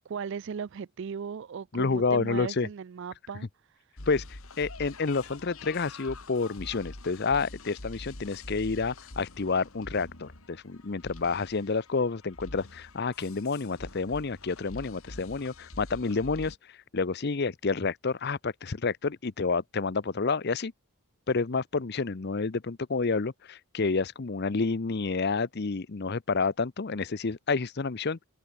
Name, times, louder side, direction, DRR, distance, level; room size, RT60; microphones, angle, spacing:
voice 1, 0.0-3.5, right 6 dB, 55° right, 0.4 m, -37 dB
voice 2, 1.7-2.7 4.1-20.7 21.3-28.2, left 4 dB, 50° left, 0.7 m, -29 dB
sound 1, 4.0-16.6, left 2 dB, 70° left, 2.7 m, -45 dB
head